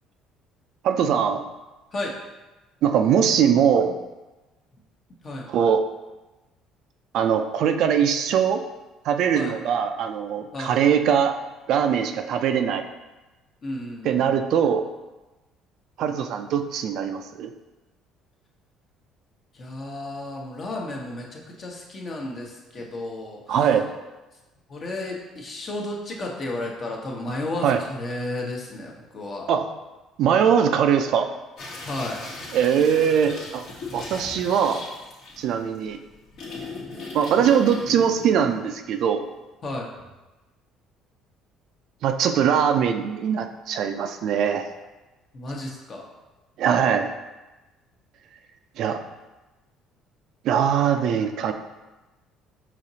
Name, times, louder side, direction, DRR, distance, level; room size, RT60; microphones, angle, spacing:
voice 1, 0.8-1.4 2.8-4.0 5.5-5.8 7.1-8.6 9.0-11.4 11.7-12.8 14.0-14.8 16.0-17.5 23.5-23.9 27.6-27.8 29.5-29.7 30.2-31.3 32.5-33.6 33.9-34.8 35.4-36.0 37.1-39.2 42.0-44.7 46.6-47.1 48.8-49.0 50.4-51.5, right 8 dB, 65° right, 7 dB, 0.3 m, -21 dB
voice 2, 13.6-14.4 19.5-23.6 24.7-29.5 31.8-32.3 39.6-40.1 45.3-46.0, left 2 dB, 45° left, -1 dB, 0.9 m, -33 dB
sound 1, 31.6-39.2, left 3 dB, 65° left, 1.1 m, -38 dB
5.0 x 3.0 x 2.7 m, 1.1 s
supercardioid pair, 85°, 0 cm